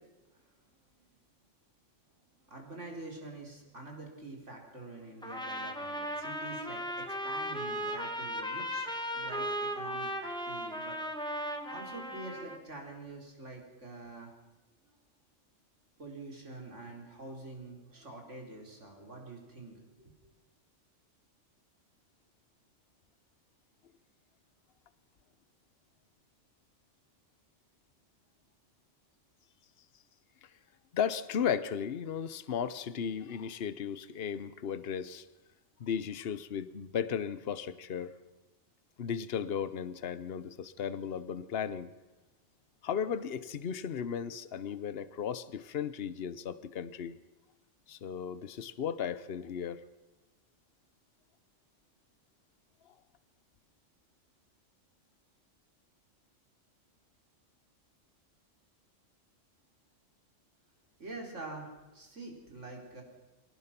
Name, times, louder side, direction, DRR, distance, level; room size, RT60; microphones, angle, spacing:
voice 1, 2.5-11.0 11.7-14.4 14.9-15.0 16.0-20.1 61.0-63.0, right 2 dB, 75° right, 1 dB, 4.6 m, -46 dB
Trumpet, 5.2-12.6, equal, 5° left, 1.9 m, -37 dB
voice 2, 30.9-35.3 35.8-38.1 39.0-41.9 42.8-47.2 47.9-49.8, left 7 dB, 55° left, 15 dB, 1.1 m, -35 dB
24.0 x 18.0 x 6.0 m, 1.1 s
omnidirectional pair, 1.3 m